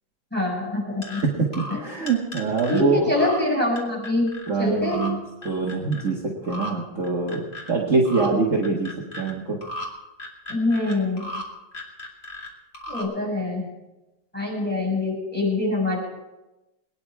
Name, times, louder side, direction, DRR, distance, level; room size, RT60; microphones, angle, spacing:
voice 1, 0.3-1.2 1.7-1.8 2.7-4.3 4.6-5.0 10.5-11.3 12.9-13.7 14.3-16.0, left 2 dB, 5° left, -4 dB, 6.4 m, -24 dB
sound 1, 1.0-1.2 1.5-2.8 3.2-3.4 3.8-4.5 4.8-5.1 5.4-6.1 6.4-6.7 7.0-7.7 8.0-8.3 8.6-9.3 9.6-9.9 10.2-11.4 11.7-12.5 12.7-13.0, left 1 dB, 25° left, 2.7 m, -35 dB
voice 2, 1.2-3.0 4.5-5.2 5.4-6.2 6.5-9.6, right 4 dB, 40° right, -3 dB, 2.0 m, -24 dB
22.5 x 10.5 x 4.8 m, 1.0 s
omnidirectional pair, 2.2 m